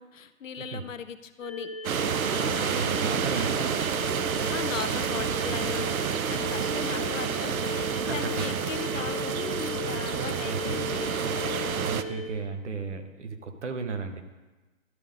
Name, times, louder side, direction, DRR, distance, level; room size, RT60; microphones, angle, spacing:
voice 1, 0.0-1.7 2.5-3.0 4.5-11.2, left 7 dB, 70° left, 11 dB, 0.7 m, -38 dB
sound 1, 1.4-12.3, left 4 dB, 25° left, 0.6 m, -36 dB
sound 2, 1.8-12.0, right 8 dB, 85° right, 0.6 m, -29 dB
voice 2, 2.4-3.9 8.0-8.5 9.9-10.8 11.8-14.2, right 4 dB, 55° right, 7 dB, 1.0 m, -35 dB
sound 3, 3.5-8.7, right 2 dB, 30° right, 0.7 m, -52 dB
12.5 x 5.2 x 3.7 m, 1.2 s
hypercardioid pair, 165°, 41 cm